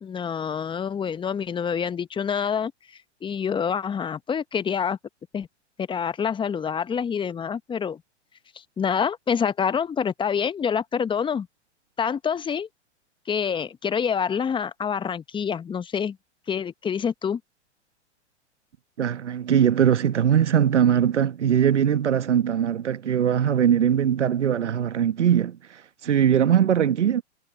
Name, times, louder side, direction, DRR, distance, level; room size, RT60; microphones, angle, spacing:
voice 1, 0.0-2.7 3.2-5.0 5.3-5.5 5.8-8.0 8.8-11.5 12.0-12.7 13.3-16.2 16.5-17.4, left 7 dB, 15° left, 1.1 m, -26 dB
voice 2, 19.0-25.6 26.0-27.2, right 9 dB, 75° right, 1.3 m, -21 dB
figure-of-eight pair, 105°, 35 cm